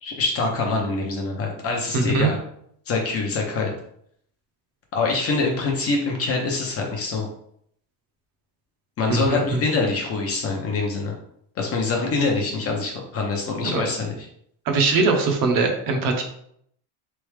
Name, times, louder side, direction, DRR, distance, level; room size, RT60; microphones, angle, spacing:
voice 1, 0.0-2.4 2.9-3.7 4.9-7.3 9.0-11.1 11.6-14.2, left 3 dB, 30° left, 0 dB, 0.5 m, -25 dB
voice 2, 1.9-2.3 9.1-9.6 13.6-13.8 14.7-16.2, right 3 dB, 45° right, 3 dB, 0.8 m, -21 dB
4.0 x 3.4 x 3.2 m, 0.69 s
cardioid pair, 175°, 48 cm